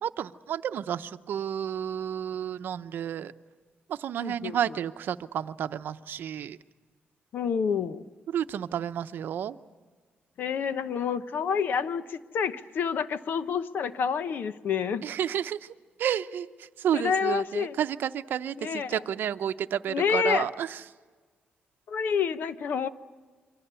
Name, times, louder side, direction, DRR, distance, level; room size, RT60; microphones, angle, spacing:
voice 1, 0.0-3.3 3.9-6.6 8.3-9.5 15.0-15.6 16.0-16.5 16.8-18.6 18.9-20.7, right 9 dB, 75° right, 11 dB, 0.7 m, -31 dB
voice 2, 4.2-4.8 7.3-8.0 10.4-15.0 16.9-17.8 18.6-19.0 19.9-20.5 21.9-22.9, left 6 dB, 70° left, 12 dB, 0.9 m, -28 dB
28.0 x 24.0 x 6.9 m, 1.4 s
cardioid pair, 125°, 3 cm